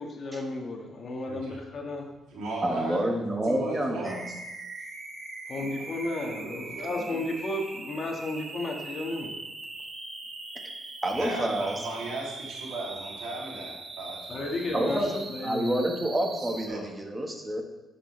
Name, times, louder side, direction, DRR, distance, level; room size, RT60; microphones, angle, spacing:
voice 1, 0.0-2.1 5.5-9.3 14.3-15.0 15.3-15.7, left 2 dB, 45° left, 1 dB, 1.6 m, -33 dB
voice 2, 1.3-1.6 2.3-3.1 3.5-4.1 5.6-5.7 6.2-7.2 11.1-15.1 16.4-16.8, right 2 dB, 80° right, -3 dB, 2.8 m, -37 dB
voice 3, 2.6-4.2 11.0-11.7 14.7-17.6, right 1 dB, 20° right, 2 dB, 1.4 m, -28 dB
sound 1, 4.0-16.7, right 3 dB, 40° right, 1.1 m, -41 dB
9.8 x 7.2 x 3.3 m, 1.0 s
cardioid pair, 90°, 0 cm